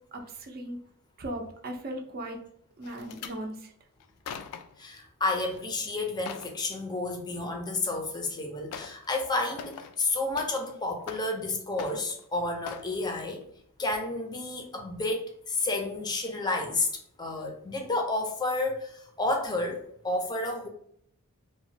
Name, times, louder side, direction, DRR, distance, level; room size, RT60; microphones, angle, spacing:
voice 1, 0.1-0.8 1.2-2.4 2.8-3.7, right 1 dB, 45° right, 3 dB, 0.5 m, -37 dB
sound 1, 2.8-3.4 4.0-4.8 5.3-5.6 6.0-6.6 7.9-8.0 8.7-9.1 9.4-10.7 11.0-11.5 11.8-12.3 12.7-12.9 13.4-13.6 13.9-14.0, left 7 dB, 75° left, 0.3 m, -42 dB
voice 2, 4.8-13.4 13.8-16.9 17.2-20.7, left 2 dB, 20° left, 2 dB, 0.5 m, -31 dB
2.9 x 2.1 x 2.7 m, 0.68 s
head